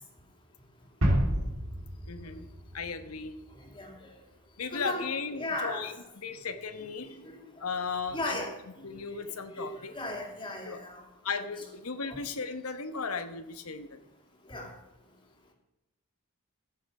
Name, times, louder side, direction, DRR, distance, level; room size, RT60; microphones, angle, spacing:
sound 1, 1.0-3.7, equal, 75° right, 2.7 m, -30 dB
voice 1, 2.1-2.5 2.7-3.3 4.6-5.9 6.2-7.2 7.6-8.4 8.8-9.9 10.6-10.8 11.2-14.0, left 5 dB, 70° left, 9 dB, 1.1 m, -36 dB
voice 2, 3.8-4.1 4.7-5.1 5.3-5.9 7.0-7.4 8.1-8.5 8.8-9.0 9.5-11.0 12.1-12.2 14.5-14.7, left 1 dB, 20° left, 1 dB, 2.5 m, -36 dB
14.5 x 6.8 x 5.3 m, 0.93 s
head